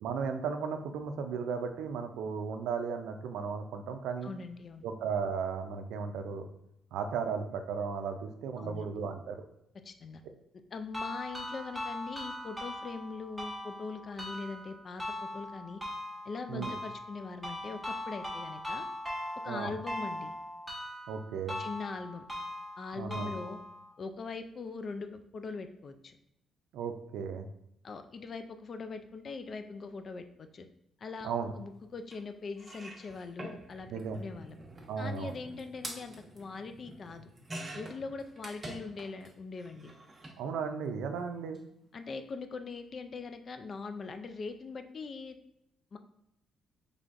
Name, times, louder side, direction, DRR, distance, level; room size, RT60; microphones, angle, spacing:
voice 1, 0.0-4.3 4.8-6.5 6.9-9.4 16.5-16.7 19.5-19.7 21.1-21.6 23.0-23.3 26.7-27.5 31.2-31.5 33.9-34.2 34.9-35.3 40.4-41.6, right 6 dB, 85° right, 6 dB, 0.4 m, -35 dB
voice 2, 4.2-4.8 8.6-8.9 9.8-10.2 10.7-15.8 16.2-18.9 19.4-20.4 21.6-22.3 22.8-23.6 24.0-26.2 27.8-30.7 31.0-33.9 34.2-34.6 35.0-37.3 37.7-39.9 41.9-45.4 45.9-46.0, left 4 dB, 45° left, 8 dB, 0.3 m, -41 dB
sound 1, 10.9-23.9, left 1 dB, ahead, 1.0 m, -40 dB
sound 2, 32.1-32.2 32.6-39.3 39.6-40.4 41.4-41.6 41.8-41.9, right 1 dB, 30° right, 1.0 m, -47 dB
3.8 x 3.3 x 2.4 m, 0.78 s
cardioid pair, 90°, 0 cm